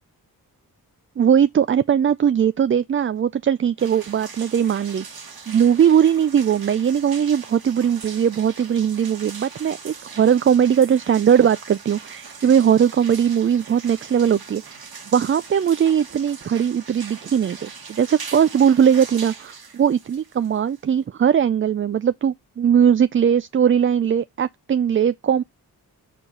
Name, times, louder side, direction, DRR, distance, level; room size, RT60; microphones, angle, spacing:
voice 1, 1.2-14.8 15.1-25.4, right 8 dB, 35° right, 0.4 m, -19 dB
sound 1, 3.8-21.0, right 5 dB, 70° right, 1.7 m, -40 dB
4.9 x 4.5 x 5.3 m
cardioid pair, 40°, 38 cm